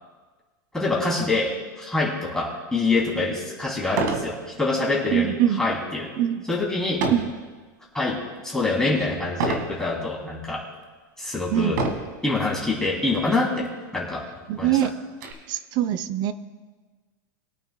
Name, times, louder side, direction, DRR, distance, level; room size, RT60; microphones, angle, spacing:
voice 1, 0.7-6.1 6.5-7.1 7.9-8.2 8.4-10.6 11.2-11.8 12.2-13.7 13.9-14.2 14.6-14.9, left 3 dB, 5° left, -5 dB, 2.9 m, -25 dB
sound 1, 2.9-3.0 3.9-4.3 4.8-5.1 7.0-7.4 8.0-8.4 9.4-9.7 10.5-10.6 11.7-12.2 13.2-13.3 13.6-13.7 14.2-15.3, right 3 dB, 70° right, 1.9 m, -27 dB
voice 2, 5.1-5.6 6.2-6.4 7.1-7.3 11.5-11.8 14.5-14.9 15.5-16.3, right 11 dB, 40° right, 14 dB, 0.6 m, -23 dB
23.0 x 8.9 x 2.2 m, 1.4 s
supercardioid pair, 125°, 11 cm